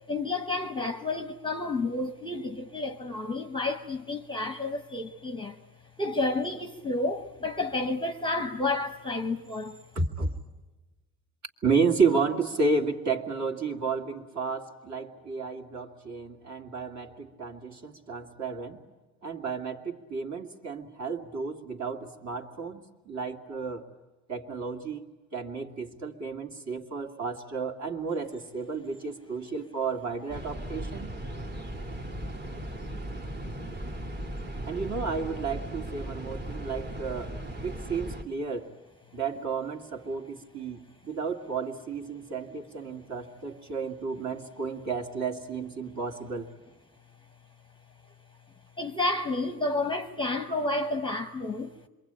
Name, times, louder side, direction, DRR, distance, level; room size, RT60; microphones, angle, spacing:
voice 1, 0.1-5.6 6.0-9.8 48.8-51.8, left 2 dB, 10° left, 1.0 m, -30 dB
voice 2, 9.9-10.3 11.6-18.8 19.2-23.9 24.3-25.0 25.3-31.1 34.6-38.7 39.1-46.5, right 4 dB, 40° right, 2.5 m, -32 dB
sound 1, 30.3-38.2, right 1 dB, 25° right, 1.7 m, -37 dB
27.0 x 22.5 x 8.9 m
cardioid pair, 110°, 42 cm